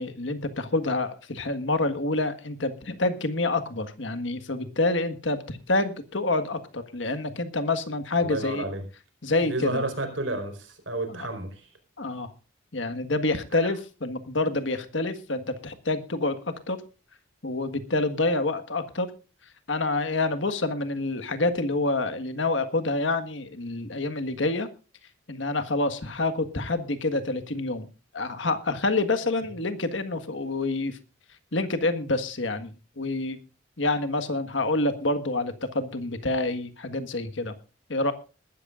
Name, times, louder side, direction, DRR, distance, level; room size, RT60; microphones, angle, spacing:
voice 1, 0.0-8.7 9.2-9.8 11.1-11.3 12.0-12.3 12.7-16.4 16.7-16.8 17.4-19.1 19.7-24.7 25.3-27.9 28.1-31.0 31.5-33.4 33.8-37.5 37.9-38.1, left 2 dB, 70° left, 9 dB, 1.6 m, -27 dB
voice 2, 8.2-8.8 9.4-11.7 13.6-13.7, right 2 dB, 75° right, 6 dB, 4.6 m, -31 dB
21.0 x 13.0 x 2.5 m, 0.32 s
head